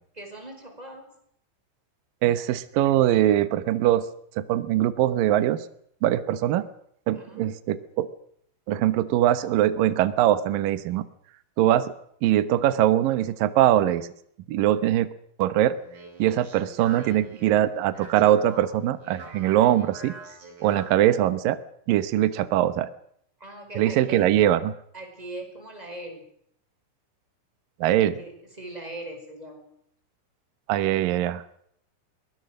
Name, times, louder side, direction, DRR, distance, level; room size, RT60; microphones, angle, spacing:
voice 1, 0.1-1.1 7.1-7.5 23.4-24.3 24.9-26.3 28.0-29.7, right 2 dB, 10° right, 4 dB, 4.8 m, -40 dB
voice 2, 2.2-4.0 4.4-5.6 6.0-6.7 7.1-8.1 8.7-11.1 11.6-11.9 12.2-14.1 14.5-15.1 15.4-15.7 16.2-20.1 20.6-21.6 21.9-22.9 23.8-24.7 27.8-28.2 30.7-31.4, right 12 dB, 85° right, 13 dB, 2.0 m, -22 dB
Speech, 15.6-21.1, right 3 dB, 35° right, 7.3 m, -45 dB
23.0 x 19.5 x 6.4 m, 0.68 s
omnidirectional pair, 5.8 m